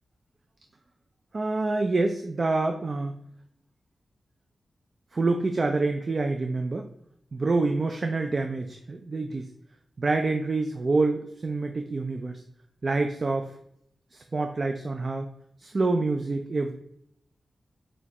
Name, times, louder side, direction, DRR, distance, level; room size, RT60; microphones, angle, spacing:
voice 1, 1.3-3.1 5.1-6.9 7.3-9.5 10.0-12.4 12.8-13.5 14.1-15.3 15.6-16.7, right 3 dB, 45° right, 5 dB, 0.3 m, -27 dB
6.1 x 2.2 x 2.8 m, 0.73 s
wide cardioid pair, 100°, 0 cm